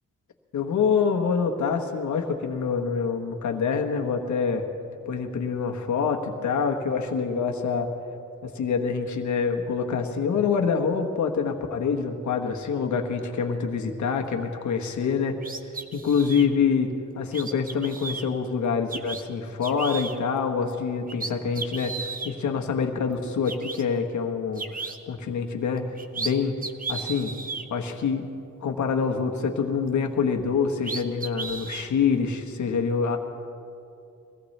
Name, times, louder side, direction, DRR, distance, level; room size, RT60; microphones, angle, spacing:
voice 1, 0.5-4.6 5.1-7.9 8.4-15.4 15.9-16.9 17.1-24.6 25.1-25.8 26.1-26.5 26.9-27.3 27.7-28.3 28.6-33.2, left 6 dB, 60° left, 3 dB, 1.3 m, -26 dB
sound 1, 15.4-16.5 17.3-18.2 18.9-19.2 19.6-20.2 20.7-20.8 21.1-22.3 23.1-23.2 23.4-23.8 24.6-25.0 25.8-26.3 26.6-27.6 30.4-30.5 30.8-31.9, right 4 dB, 25° right, 0.8 m, -34 dB
23.0 x 17.5 x 3.3 m, 2.7 s
wide cardioid pair, 130°, 32 cm